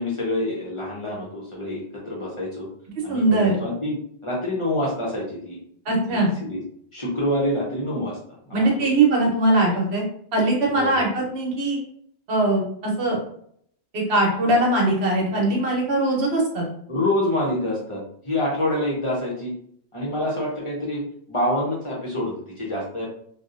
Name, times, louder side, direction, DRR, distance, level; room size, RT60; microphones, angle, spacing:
voice 1, 0.0-2.7 3.0-5.6 6.1-6.6 6.9-8.2 8.5-8.9 10.7-11.0 16.9-19.5 19.9-21.0 21.3-23.1, left 1 dB, 35° left, -5 dB, 0.5 m, -27 dB
voice 2, 3.1-3.5 5.8-6.3 8.5-10.0 10.3-11.8 12.3-13.2 13.9-16.7, right 2 dB, 65° right, -1 dB, 1.1 m, -21 dB
2.7 x 2.0 x 2.4 m, 0.66 s
omnidirectional pair, 1.2 m